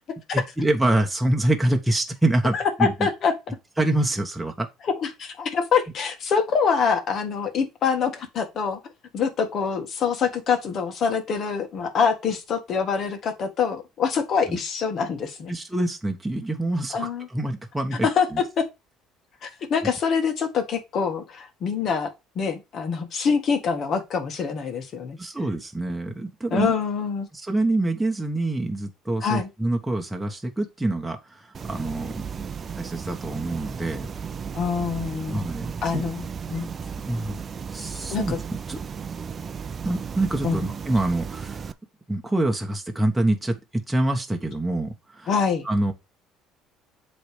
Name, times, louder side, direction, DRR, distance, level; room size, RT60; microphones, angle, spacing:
voice 1, 0.3-2.9 3.8-4.7 14.5-14.6 15.5-18.4 25.2-26.7 27.3-31.4 31.7-32.5 32.8-34.1 35.3-36.0 37.0-37.4 37.7-38.3 38.7-38.8 39.8-41.7 42.1-45.3 45.6-45.9, right 1 dB, 10° right, 1.1 m, -26 dB
voice 2, 2.5-3.3 4.8-8.8 9.1-15.5 16.9-17.3 18.0-18.6 19.4-25.2 26.5-27.3 29.2-29.5 34.5-35.4 35.8-36.7 38.1-38.4 40.4-40.6 45.3-45.7, left 6 dB, 50° left, 1.7 m, -25 dB
sound 1, 31.5-41.7, right 6 dB, 35° right, 0.5 m, -35 dB
7.7 x 3.3 x 5.0 m
supercardioid pair, 100°, 0 cm